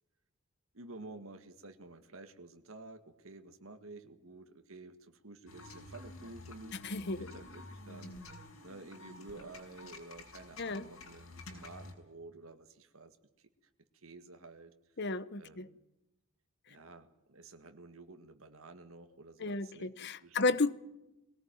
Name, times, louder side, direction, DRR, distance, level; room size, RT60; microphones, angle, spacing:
voice 1, 0.7-13.5 13.9-14.7 15.4-15.8 16.7-19.9 20.2-20.6, right 2 dB, 75° right, 1.8 m, -51 dB
sound 1, 5.5-11.9, left 2 dB, 85° left, 5.4 m, -50 dB
voice 2, 6.8-7.3 10.6-10.9 15.0-15.7 19.4-20.7, left 3 dB, 50° left, 0.9 m, -33 dB
22.5 x 18.5 x 9.2 m
head